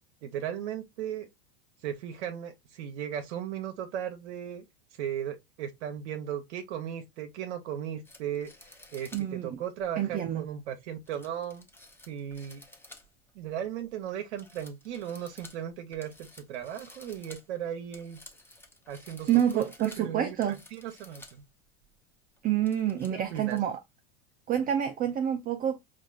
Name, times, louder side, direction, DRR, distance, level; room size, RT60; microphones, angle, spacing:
voice 1, 0.2-1.3 1.8-4.6 5.0-8.5 8.9-11.7 12.1-12.6 13.3-18.2 18.9-19.6 20.0-21.4 23.1-23.6, right 9 dB, 75° right, 0.8 m, -36 dB
sound 1, 8.0-9.3 9.8-9.9 11.1-13.3 13.7-14.1 14.4-21.4 21.8-21.9 22.4-23.6, left 2 dB, 5° left, 0.8 m, -53 dB
voice 2, 9.1-9.6 10.0-10.4 19.3-20.6 22.4-23.8 24.5-25.8, right 10 dB, 25° right, 0.5 m, -28 dB
5.2 x 2.5 x 2.3 m
supercardioid pair, 115°, 34 cm